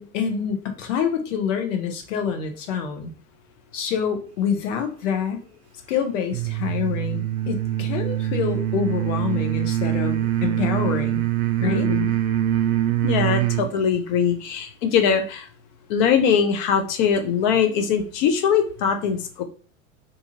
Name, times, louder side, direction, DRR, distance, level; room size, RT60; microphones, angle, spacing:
voice 1, 0.0-3.1 3.7-5.4 5.9-11.3 11.6-11.9, left 7 dB, 60° left, 6 dB, 0.7 m, -26 dB
sound 1, 6.3-13.7, right 13 dB, 75° right, 0.5 m, -24 dB
voice 2, 11.6-12.1 13.0-15.5 15.9-19.4, left 7 dB, 35° left, 6 dB, 0.4 m, -21 dB
2.7 x 2.4 x 2.7 m, 0.39 s
figure-of-eight pair, 90°, 43 cm